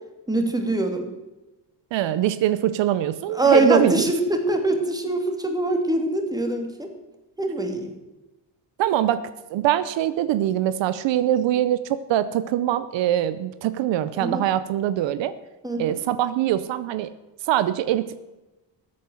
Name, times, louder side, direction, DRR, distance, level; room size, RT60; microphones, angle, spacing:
voice 1, 0.3-1.1 3.3-6.9 7.4-7.9 14.2-14.4 15.6-15.9, right 2 dB, 10° right, 4 dB, 2.7 m, -23 dB
voice 2, 1.9-4.1 8.8-15.3 15.8-17.1 17.4-18.2, right 12 dB, 80° right, 14 dB, 0.8 m, -23 dB
14.0 x 8.7 x 7.9 m, 1.1 s
cardioid pair, 100°, 43 cm